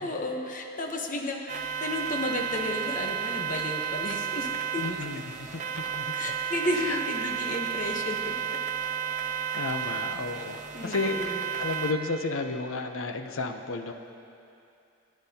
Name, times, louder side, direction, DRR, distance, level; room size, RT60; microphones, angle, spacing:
voice 1, 0.0-4.8 6.1-8.4 9.3-9.4 10.3-10.5 10.7-11.4, left 1 dB, 40° left, 1 dB, 0.9 m, -33 dB
sound 1, 1.5-11.9, right 8 dB, 35° right, 0.5 m, -32 dB
voice 2, 4.8-5.2 5.5-6.1 6.7-7.0 9.5-13.9, left 3 dB, 75° left, 6 dB, 0.7 m, -32 dB
18.0 x 9.5 x 2.8 m, 2.6 s
head